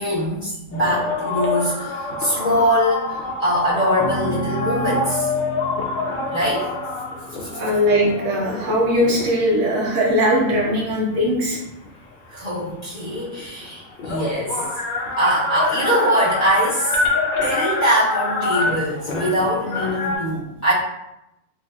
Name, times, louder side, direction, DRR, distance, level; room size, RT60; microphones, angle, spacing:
voice 1, 0.0-5.3 6.3-6.7 7.4-7.5 12.3-14.6 15.2-17.0 17.4-20.7, equal, 30° left, -12 dB, 1.4 m, -22 dB
sound 1, 0.7-9.5 10.2-11.9 13.1-13.2 13.4-20.2, left 3 dB, 80° left, 0.4 m, -26 dB
sound 2, 4.0-10.5, right 1 dB, 65° left, 0.8 m, -34 dB
voice 2, 7.5-11.6, equal, 70° right, -3 dB, 0.9 m, -20 dB
3.3 x 2.2 x 2.3 m, 0.88 s
omnidirectional pair, 1.4 m